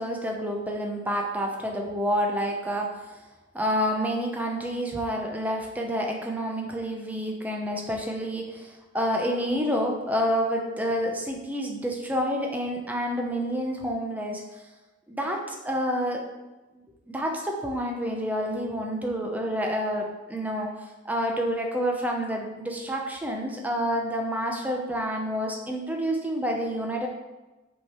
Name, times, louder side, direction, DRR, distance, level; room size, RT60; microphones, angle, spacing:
voice 1, 0.0-3.2 3.5-14.7 15.1-16.2 16.8-27.1, equal, 10° right, 1 dB, 0.7 m, -29 dB
5.8 x 3.8 x 4.4 m, 1.1 s
head